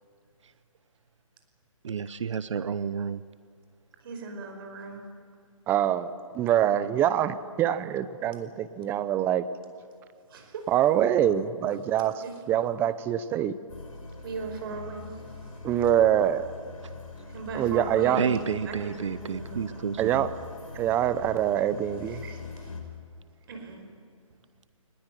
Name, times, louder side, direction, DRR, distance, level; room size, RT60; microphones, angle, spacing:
voice 1, 1.8-3.2 18.2-20.2, right 7 dB, 60° right, 15 dB, 0.8 m, -30 dB
voice 2, 4.0-5.0 10.3-10.6 12.2-12.3 14.2-15.0 17.3-20.0 22.2-22.4 23.5-23.8, right 3 dB, 40° right, 5 dB, 5.2 m, -38 dB
voice 3, 5.7-9.4 10.7-12.1 12.5-13.6 15.6-16.5 17.5-18.2 20.0-20.3 20.7-22.2, right 11 dB, 10° right, 14 dB, 0.7 m, -25 dB
sound 1, 13.7-22.8, left 3 dB, 80° left, 4.8 m, -43 dB
23.0 x 20.0 x 9.2 m, 2.3 s
hypercardioid pair, 150°, 18 cm